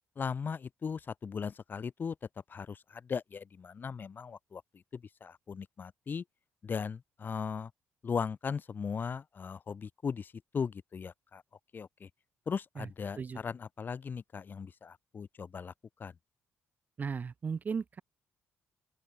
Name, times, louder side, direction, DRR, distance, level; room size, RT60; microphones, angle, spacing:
voice 1, 0.1-2.1 2.5-6.2 6.6-7.7 8.0-11.4 11.7-12.1 12.4-15.7 16.0-16.1, left 6 dB, 40° left, 1.8 m, -38 dB
voice 2, 17.0-18.0, right 5 dB, 35° right, 0.4 m, -36 dB
open air
cardioid pair, 100°, 5 cm